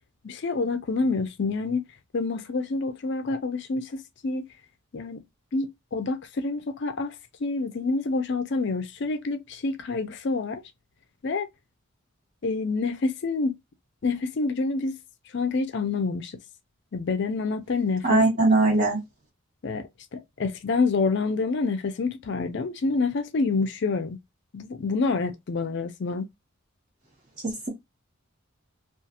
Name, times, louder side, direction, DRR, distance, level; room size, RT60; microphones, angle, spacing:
voice 1, 0.2-1.8 2.1-4.4 4.9-5.2 5.5-7.1 7.4-10.6 11.2-11.5 12.4-13.5 14.0-15.0 15.3-16.4 16.9-18.2 19.6-24.2 24.5-26.3, left 3 dB, 55° left, 0.4 m, -27 dB
voice 2, 18.0-19.0 27.4-27.7, right 2 dB, 40° right, 1.2 m, -21 dB
2.7 x 2.4 x 2.3 m
head